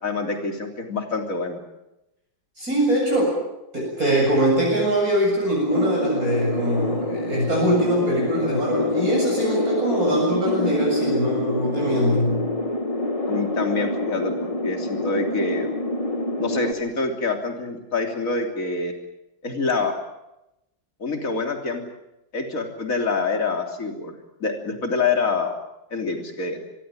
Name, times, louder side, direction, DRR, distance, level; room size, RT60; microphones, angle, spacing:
voice 1, 0.0-1.6 13.3-15.7 16.4-18.9 19.4-20.0 21.0-21.9 22.3-25.6 25.9-26.6, left 4 dB, 45° left, 3 dB, 3.7 m, -26 dB
voice 2, 2.6-3.4 3.7-12.4, right 1 dB, 50° right, -2 dB, 8.0 m, -22 dB
sound 1, 5.7-16.7, left 2 dB, 20° left, 1.9 m, -26 dB
25.5 x 23.5 x 7.5 m, 0.89 s
omnidirectional pair, 2.0 m